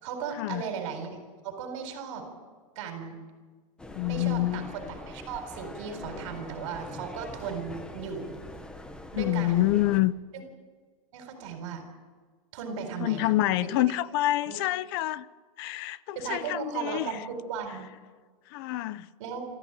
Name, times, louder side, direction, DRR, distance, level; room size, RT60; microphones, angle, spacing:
voice 1, 0.0-1.2 1.4-2.3 2.8-3.2 4.0-8.4 9.1-9.7 10.3-10.4 11.1-11.8 12.5-13.3 13.6-13.7 14.5-14.6 16.1-17.9 19.2-19.4, right 6 dB, 55° right, 4.2 m, -36 dB
sound 1, 3.8-10.0, left 1 dB, 5° left, 1.0 m, -43 dB
voice 2, 3.9-4.9 9.2-10.1 13.0-15.3 15.6-17.2 18.5-19.1, left 16 dB, 40° left, 0.7 m, -27 dB
25.5 x 14.0 x 9.1 m
supercardioid pair, 170°, 18 cm